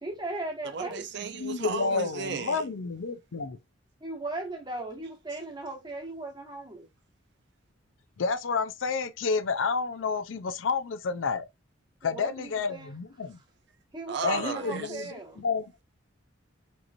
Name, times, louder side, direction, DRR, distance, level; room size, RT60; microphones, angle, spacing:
voice 1, 0.0-1.1 4.0-6.9 12.0-12.9 13.9-15.4, right 2 dB, 20° right, 1.0 m, -37 dB
voice 2, 0.6-2.6 14.1-15.1, right 5 dB, 60° right, 0.5 m, -34 dB
voice 3, 1.4-3.6 8.2-11.4 12.0-13.4 14.2-15.7, left 4 dB, 80° left, 0.5 m, -30 dB
4.5 x 2.9 x 2.5 m
head